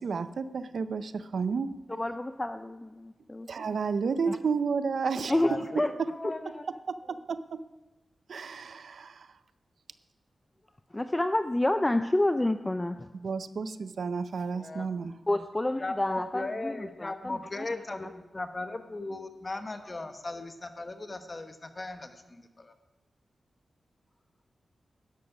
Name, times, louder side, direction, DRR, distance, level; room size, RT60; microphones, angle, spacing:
voice 1, 0.0-1.7 3.5-6.1 6.4-6.5 6.9-7.6 8.3-9.3 13.2-15.1, right 5 dB, 75° right, 0.6 m, -32 dB
voice 2, 2.0-3.5 4.3-4.4 5.3-5.9 10.9-13.1 15.3-18.1, left 1 dB, 15° left, 0.5 m, -29 dB
voice 3, 5.4-5.8 6.1-6.6 14.5-14.9 15.8-22.7, left 2 dB, 35° left, 1.2 m, -37 dB
12.5 x 10.5 x 6.0 m
wide cardioid pair, 100°, 0 cm